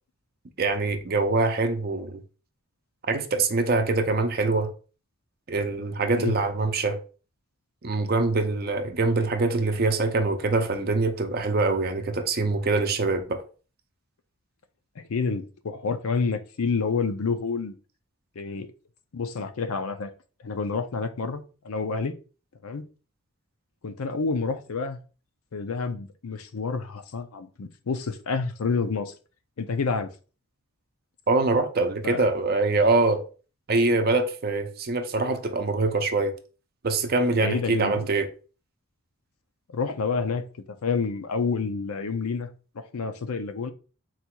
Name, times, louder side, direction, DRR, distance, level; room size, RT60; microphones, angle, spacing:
voice 1, 0.6-2.2 3.1-4.7 5.5-7.0 7.8-13.4 31.3-33.2 33.7-36.3 36.8-38.3, right 3 dB, 45° right, 0.5 m, -24 dB
voice 2, 15.0-17.7 18.4-18.7 19.1-20.1 20.4-22.1 22.6-22.9 23.8-25.0 25.5-29.1 29.6-30.1 32.0-32.2 37.3-38.1 39.7-42.5 42.7-43.7, left 4 dB, 80° left, 0.5 m, -29 dB
4.0 x 2.4 x 4.4 m
head